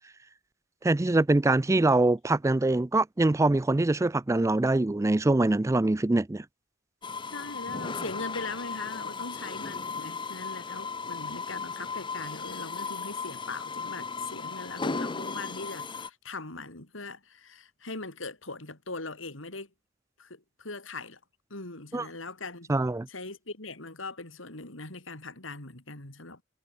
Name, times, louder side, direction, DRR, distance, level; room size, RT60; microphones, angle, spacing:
voice 1, 0.8-6.4 21.9-22.1 22.7-23.1, right 2 dB, 15° right, 0.4 m, -24 dB
sound 1, 7.0-16.1, left 4 dB, 25° left, 0.8 m, -36 dB
voice 2, 7.3-19.7 20.2-21.2 21.5-22.7 23.1-26.4, left 3 dB, 80° left, 4.4 m, -40 dB
head